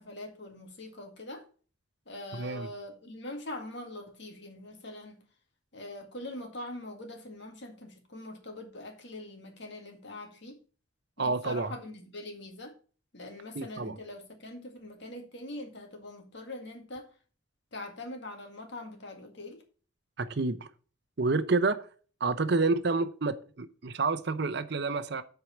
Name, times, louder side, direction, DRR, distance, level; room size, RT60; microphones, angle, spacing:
voice 1, 0.0-1.4 2.1-5.2 5.7-10.6 11.2-12.7 13.1-17.1 17.7-19.6, left 1 dB, 60° left, 2.0 m, -43 dB
voice 2, 2.3-2.7 11.2-11.7 13.6-13.9 20.2-20.7 21.2-21.9 22.2-25.2, right 3 dB, 55° right, 0.7 m, -29 dB
8.1 x 4.7 x 7.2 m
head